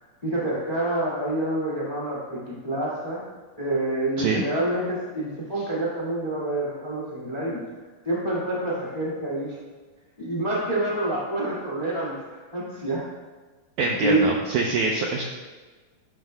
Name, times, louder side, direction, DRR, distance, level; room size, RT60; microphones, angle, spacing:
voice 1, 0.2-3.2 3.6-7.6 8.0-9.5 10.2-12.1 12.5-13.0 14.0-14.3, right 1 dB, 30° left, -5 dB, 0.7 m, -27 dB
voice 2, 13.8-15.2, right 3 dB, 85° right, 1 dB, 1.7 m, -24 dB
12.0 x 9.5 x 2.2 m, 1.3 s
omnidirectional pair, 4.3 m